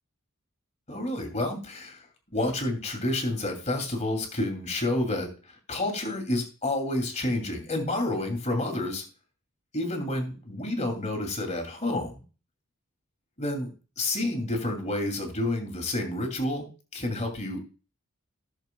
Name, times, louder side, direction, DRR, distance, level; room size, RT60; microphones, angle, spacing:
voice 1, 0.9-2.0 2.3-5.3 5.7-9.0 9.7-12.2 13.4-13.7 14.0-16.7 16.9-17.6, left 1 dB, 30° left, 3 dB, 2.4 m, -29 dB
15.5 x 6.8 x 2.2 m, 0.34 s
head